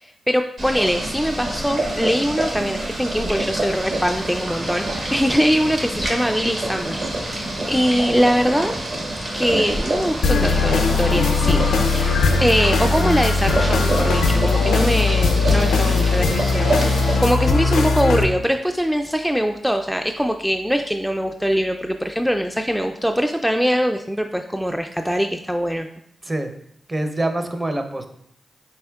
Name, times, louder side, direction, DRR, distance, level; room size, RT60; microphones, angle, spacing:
voice 1, 0.0-8.7 9.3-11.6 11.9-16.8 17.2-25.9, equal, ahead, 5 dB, 0.3 m, -22 dB
Boiling, 0.6-17.2, right 1 dB, 65° right, 1.5 m, -27 dB
sound 1, 10.2-18.2, left 4 dB, 85° left, 0.4 m, -19 dB
voice 2, 26.9-28.1, right 1 dB, 30° right, 6 dB, 0.7 m, -25 dB
4.3 x 4.2 x 2.3 m, 0.70 s
supercardioid pair, 45°, 0 cm